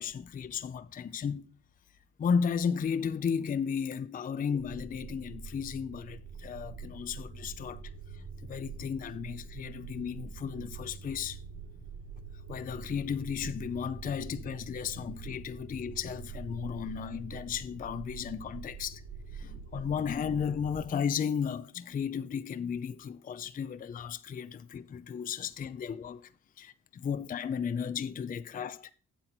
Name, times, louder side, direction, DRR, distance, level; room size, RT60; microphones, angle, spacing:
voice 1, 0.0-1.4 2.2-7.8 8.1-8.2 8.5-11.4 12.5-19.0 19.3-26.3 26.6-28.9, left 7 dB, 30° left, 0.4 m, -34 dB
sound 1, 4.6-20.9, right 5 dB, 85° right, 3.6 m, -45 dB
8.1 x 7.6 x 4.3 m
cardioid pair, 90°, 30 cm